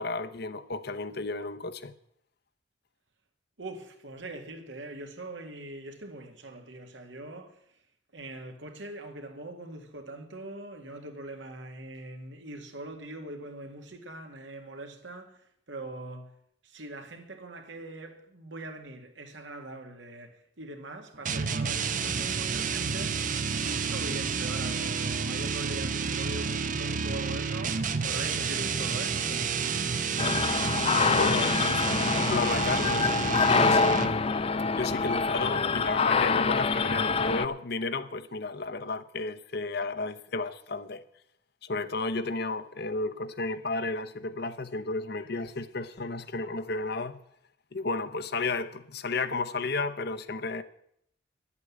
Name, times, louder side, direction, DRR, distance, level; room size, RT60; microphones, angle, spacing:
voice 1, 0.0-1.9 31.1-33.9 34.8-41.0 41.6-47.2 47.7-50.6, left 3 dB, 60° left, 0.8 m, -33 dB
voice 2, 3.6-7.8 8.1-16.4 16.6-29.6, right 2 dB, 80° right, 2.0 m, -42 dB
sound 1, 21.3-34.3, right 5 dB, 45° right, 0.8 m, -30 dB
sound 2, 30.2-37.5, left 4 dB, 30° left, 0.5 m, -25 dB
11.0 x 8.3 x 8.4 m
head